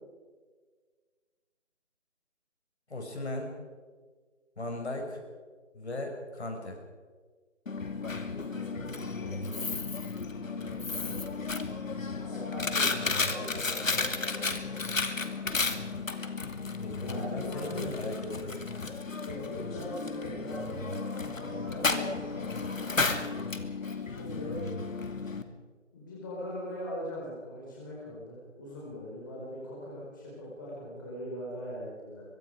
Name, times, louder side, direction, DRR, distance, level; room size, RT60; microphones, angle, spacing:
voice 1, 2.9-3.5 4.6-5.2 5.7-6.8 16.6-18.6 24.3-24.6, left 2 dB, 55° left, 2 dB, 5.9 m, -37 dB
Coin (dropping), 7.7-25.4, left 4 dB, 90° left, 2.6 m, -33 dB
voice 2, 8.2-9.8 10.3-11.5 12.2-14.6 15.0-15.2 16.9-17.9 19.2-20.8 21.2-22.6 24.0-24.6 25.9-32.3, equal, 15° left, -6 dB, 4.5 m, -41 dB
24.0 x 23.5 x 5.0 m, 1.5 s
figure-of-eight pair, 175°, 39 cm